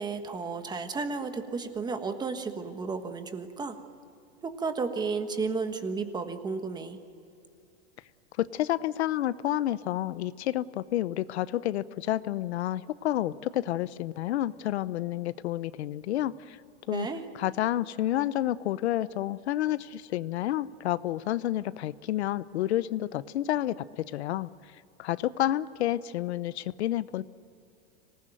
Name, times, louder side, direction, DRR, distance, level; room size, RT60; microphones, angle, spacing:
voice 1, 0.0-3.8 4.4-7.0 16.9-17.2, right 4 dB, 15° right, 8 dB, 1.3 m, -33 dB
voice 2, 8.4-16.6 16.9-17.1 17.3-24.5 25.0-27.2, left 13 dB, 85° left, 16 dB, 0.9 m, -30 dB
25.5 x 19.0 x 9.2 m, 2.6 s
supercardioid pair, 155°, 32 cm